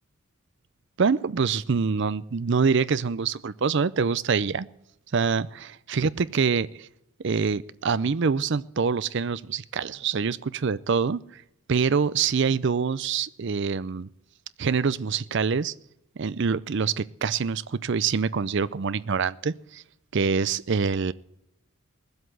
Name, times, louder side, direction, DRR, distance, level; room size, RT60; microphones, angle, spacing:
voice 1, 1.0-4.7 5.1-6.9 7.2-11.4 11.7-14.1 14.6-15.7 16.2-19.8 20.1-21.1, right 5 dB, 50° right, 16 dB, 0.5 m, -25 dB
19.0 x 7.9 x 7.9 m, 0.82 s
head